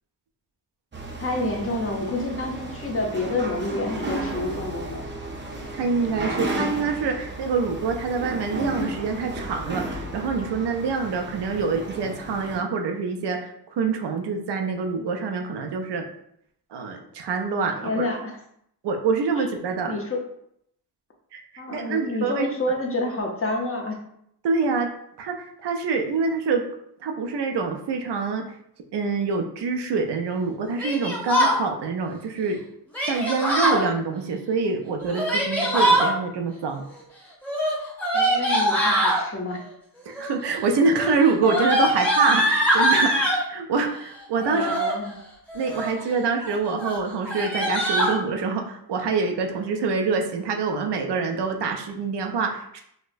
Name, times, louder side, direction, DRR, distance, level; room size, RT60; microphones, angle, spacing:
sound 1, 0.9-12.6, right 2 dB, 30° right, 0.6 m, -33 dB
voice 1, 1.2-5.0 17.8-18.4 19.4-19.5 19.9-20.2 21.6-24.0 38.1-39.6 44.5-45.1, left 2 dB, 35° left, 0 dB, 0.7 m, -28 dB
voice 2, 5.8-16.0 16.7-17.9 18.8-20.0 21.3-21.4 21.7-22.5 24.4-24.9 25.2-26.6 27.0-28.4 28.9-32.6 33.1-36.8 40.1-44.7 45.5-52.8, right 4 dB, 90° right, 4 dB, 0.5 m, -25 dB
Yell, 30.8-31.6 32.9-33.8 35.0-36.1 37.4-39.2 40.1-40.5 40.8-43.4 44.4-44.9 45.5-46.0 46.4-46.5 46.8-46.9 47.2-48.1, equal, 5° left, 1.0 m, -22 dB
4.2 x 2.1 x 2.5 m, 0.72 s
cardioid pair, 70°, 40 cm